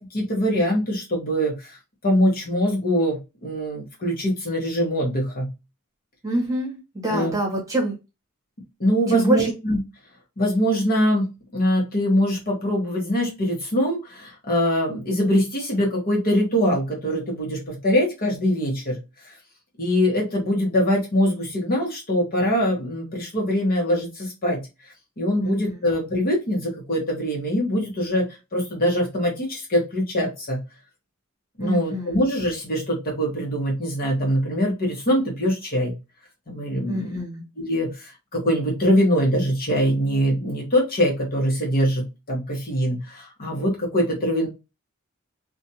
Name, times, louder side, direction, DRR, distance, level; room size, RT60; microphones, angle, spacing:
voice 1, 0.0-1.8 2.0-5.5 7.1-7.3 8.8-9.8 10.4-19.0 19.2-19.3 19.8-24.6 25.2-28.3 28.5-30.6 31.6-35.9 36.5-37.2 37.6-44.5, equal, 45° left, -1 dB, 1.0 m, -23 dB
voice 2, 6.2-8.0 9.1-9.5 25.4-25.8 31.6-32.2 36.9-37.4, right 2 dB, 15° right, -3 dB, 1.1 m, -26 dB
2.5 x 2.2 x 2.7 m, 0.26 s
head